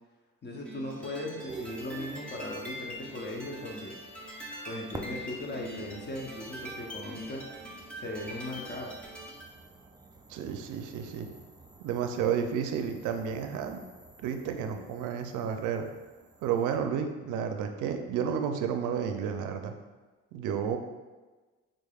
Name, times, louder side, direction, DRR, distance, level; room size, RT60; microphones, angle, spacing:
voice 1, 0.4-4.0 4.7-7.4 8.0-8.9, left 1 dB, 35° left, 0 dB, 0.8 m, -38 dB
sound 1, 0.6-9.5, equal, 5° left, 0.8 m, -43 dB
sound 2, 1.5-16.8, right 3 dB, 15° right, 0.3 m, -50 dB
voice 2, 10.3-11.3 11.8-13.8 14.2-15.9 16.4-19.7 20.3-20.8, right 7 dB, 85° right, 6 dB, 0.4 m, -31 dB
3.9 x 3.3 x 2.3 m, 1.3 s
cardioid pair, 90°, 30 cm